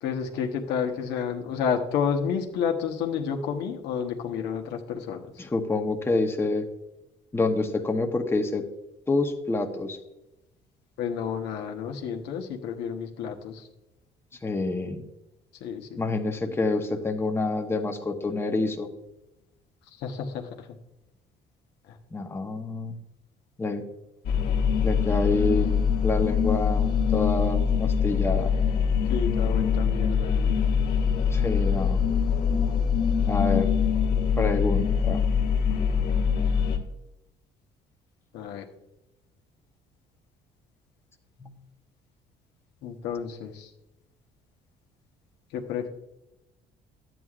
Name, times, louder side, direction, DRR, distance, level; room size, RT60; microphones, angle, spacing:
voice 1, 0.0-5.3 11.0-13.7 15.6-16.0 20.0-20.7 21.9-22.0 29.1-30.6 38.3-38.7 42.8-43.7 45.5-45.9, left 7 dB, 85° left, 3 dB, 1.1 m, -30 dB
voice 2, 5.4-6.7 7.3-8.7 9.1-10.0 14.4-15.0 16.0-18.9 22.1-23.0 23.6-23.9 24.8-25.8 26.0-28.5 31.3-32.0 33.3-33.7 34.4-35.2 41.4-41.5, left 3 dB, 15° left, 3 dB, 0.9 m, -27 dB
sound 1, 24.2-36.8, left 6 dB, 65° left, 1.3 m, -23 dB
12.5 x 9.2 x 2.4 m, 0.93 s
cardioid pair, 110°, 17 cm